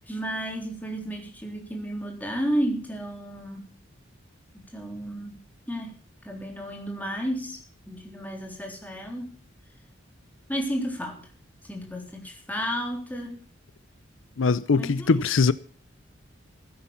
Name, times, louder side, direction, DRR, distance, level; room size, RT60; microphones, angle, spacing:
voice 1, 0.1-3.7 4.5-6.0 6.2-9.3 10.5-11.3 11.6-13.4 14.8-15.3, equal, 10° left, 3.6 m, -32 dB
voice 2, 14.4-15.5, left 4 dB, 80° left, 0.6 m, -21 dB
16.0 x 9.6 x 7.2 m
head